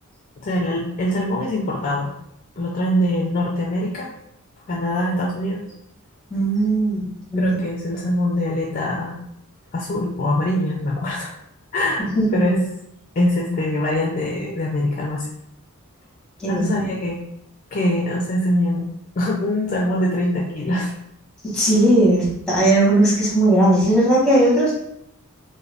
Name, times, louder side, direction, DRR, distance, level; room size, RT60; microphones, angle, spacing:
voice 1, 0.4-2.1 2.6-4.1 4.7-5.7 7.4-9.2 9.7-11.3 11.7-12.1 12.3-12.6 13.2-15.3 16.5-17.2 17.7-18.9 19.2-20.9, left 1 dB, 35° left, -3 dB, 0.4 m, -23 dB
voice 2, 6.3-7.5 12.0-12.5 16.4-16.7 21.4-24.7, right 1 dB, 5° left, -6 dB, 1.0 m, -18 dB
2.4 x 2.2 x 3.3 m, 0.76 s
head